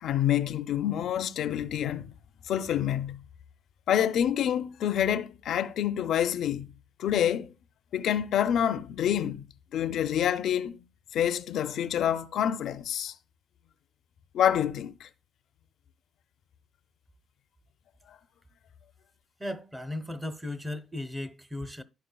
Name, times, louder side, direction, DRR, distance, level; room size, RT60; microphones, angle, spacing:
voice 1, 0.0-2.1 2.5-3.2 3.9-6.7 7.0-7.5 7.9-9.5 9.7-10.8 11.1-13.1 14.3-15.1, left 10 dB, 75° left, 0.4 m, -27 dB
voice 2, 19.4-21.8, left 1 dB, 10° right, 0.7 m, -36 dB
12.0 x 4.7 x 2.3 m
cardioid pair, 90°, 0 cm